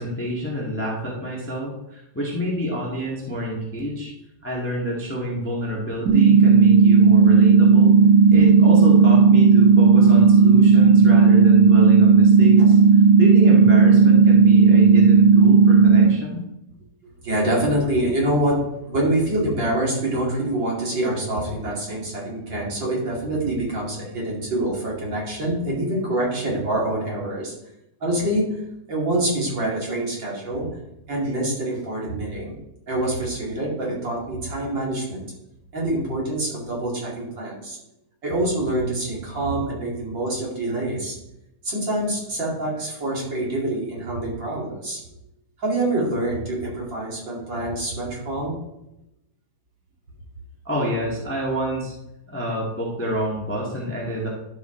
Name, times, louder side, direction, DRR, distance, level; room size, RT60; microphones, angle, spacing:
voice 1, 0.0-4.1 4.4-7.9 8.3-12.8 13.2-16.4 50.6-51.9 52.3-54.3, equal, 15° left, -4 dB, 0.4 m, -28 dB
sound 1, 6.1-16.1, right 5 dB, 70° right, 2.8 m, -13 dB
voice 2, 17.0-27.5 28.0-30.7 31.1-32.6 32.9-35.2 35.7-37.8 38.2-41.2 41.6-45.0 45.6-48.6, right 1 dB, 35° right, -4 dB, 2.7 m, -25 dB
12.0 x 6.2 x 3.8 m, 0.86 s
omnidirectional pair, 3.9 m